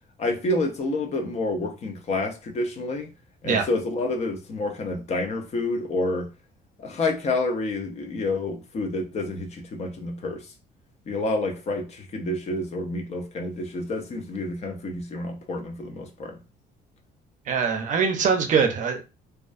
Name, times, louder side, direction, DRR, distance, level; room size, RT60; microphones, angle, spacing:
voice 1, 0.2-3.1 3.4-6.3 6.8-10.5 11.1-16.4, left 2 dB, 40° left, 0.6 m, -28 dB
voice 2, 17.5-19.0, right 6 dB, 50° right, 0.5 m, -22 dB
2.3 x 2.2 x 2.4 m
cardioid pair, 110°, 17 cm